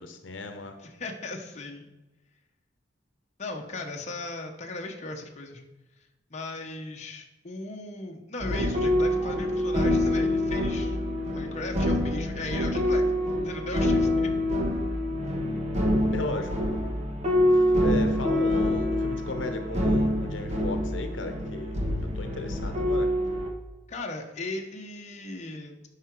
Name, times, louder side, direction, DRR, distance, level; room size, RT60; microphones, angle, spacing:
voice 1, 0.0-0.8 16.1-16.5 17.5-21.8 22.1-23.1, left 2 dB, 80° left, 7 dB, 0.9 m, -36 dB
voice 2, 0.8-1.9 3.4-5.6 6.3-11.0 11.3-13.0 13.3-14.3 23.9-25.8, left 2 dB, 40° left, 2 dB, 1.0 m, -37 dB
sound 1, 8.4-23.5, left 1 dB, 35° right, 1.3 m, -26 dB
9.8 x 5.8 x 4.6 m, 1.1 s
head